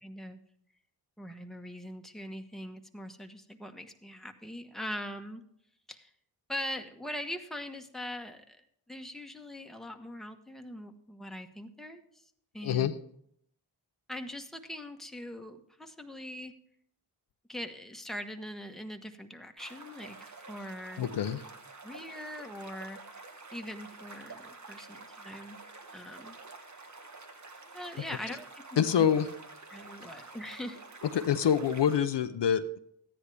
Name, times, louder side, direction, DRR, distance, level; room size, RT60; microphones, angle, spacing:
voice 1, 0.0-0.4 1.2-5.4 5.9-6.1 6.5-12.0 12.5-12.9 14.1-16.5 17.5-21.1 21.8-23.2 23.5-25.6 25.9-26.3 27.7-29.0 29.7-30.8, left 1 dB, ahead, 5 dB, 1.2 m, -42 dB
voice 2, 12.6-12.9 21.0-21.4 28.8-29.3 31.1-32.8, left 8 dB, 60° left, 10 dB, 0.7 m, -26 dB
sound 1, 19.6-32.0, right 3 dB, 35° right, 1.4 m, -49 dB
13.5 x 10.0 x 3.4 m, 0.69 s
cardioid pair, 45°, 47 cm